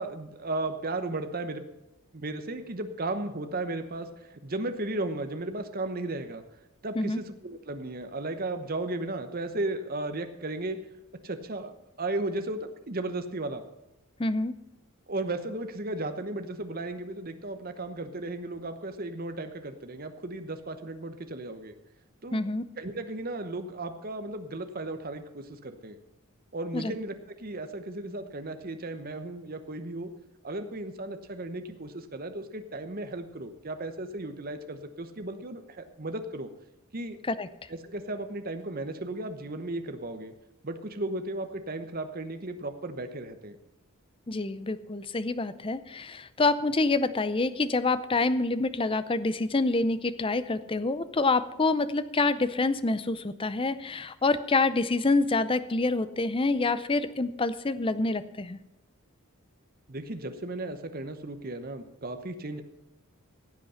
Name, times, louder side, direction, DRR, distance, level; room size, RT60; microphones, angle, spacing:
voice 1, 0.0-1.6 2.1-6.4 6.8-10.8 11.2-13.6 15.1-21.7 22.2-22.5 22.8-26.0 26.5-30.1 30.4-36.5 36.9-37.2 37.7-40.3 40.6-43.6 59.9-62.6, right 2 dB, 40° right, 8 dB, 1.0 m, -35 dB
voice 2, 14.2-14.5 22.3-22.6 26.7-26.9 37.3-37.5 44.3-58.6, left 3 dB, 25° left, 14 dB, 0.5 m, -27 dB
15.5 x 8.3 x 5.7 m, 0.95 s
head